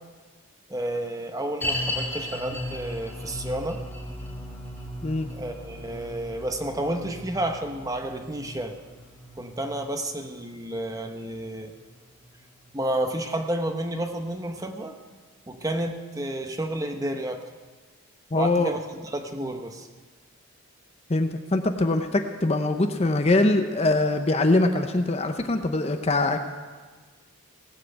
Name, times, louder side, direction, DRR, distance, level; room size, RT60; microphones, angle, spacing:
voice 1, 0.7-3.8 5.3-8.7 9.4-11.7 12.7-14.9 15.5-17.4 18.3-19.9, right 1 dB, 15° right, 5 dB, 0.9 m, -31 dB
sound 1, 1.6-12.9 13.2-13.3 13.9-14.0, left 1 dB, 10° left, 2.2 m, -37 dB
voice 2, 18.3-18.8 21.1-26.4, left 2 dB, 30° left, 7 dB, 0.6 m, -23 dB
18.0 x 7.5 x 7.9 m, 1.4 s
head